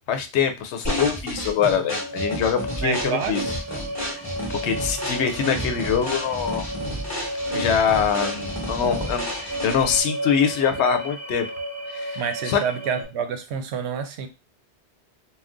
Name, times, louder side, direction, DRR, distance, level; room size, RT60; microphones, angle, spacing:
voice 1, 0.1-3.4 4.1-4.2 4.6-6.7 7.5-11.5 11.9-12.6, left 7 dB, 85° left, 7 dB, 0.9 m, -24 dB
sound 1, 0.8-10.0, equal, 15° left, 1.0 m, -31 dB
sound 2, 1.5-13.0, equal, 25° right, 0.4 m, -33 dB
voice 2, 2.8-3.4 12.2-14.3, right 7 dB, 80° right, 7 dB, 0.8 m, -28 dB
2.5 x 2.3 x 3.5 m, 0.28 s
omnidirectional pair, 1.1 m